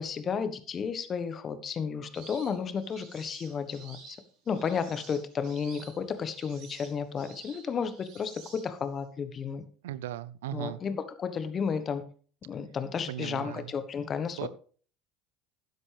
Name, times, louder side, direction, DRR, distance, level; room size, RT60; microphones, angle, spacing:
voice 1, 0.0-4.2 4.5-9.6 10.5-12.0 12.4-14.5, left 6 dB, 35° left, 12 dB, 1.3 m, -33 dB
sound 1, 2.1-9.0, right 5 dB, 65° right, 4.8 m, -51 dB
voice 2, 9.8-10.8 13.1-13.7 14.4-14.5, right 13 dB, 80° right, 19 dB, 0.5 m, -37 dB
12.0 x 10.0 x 3.5 m, 0.42 s
hypercardioid pair, 75°, 0 cm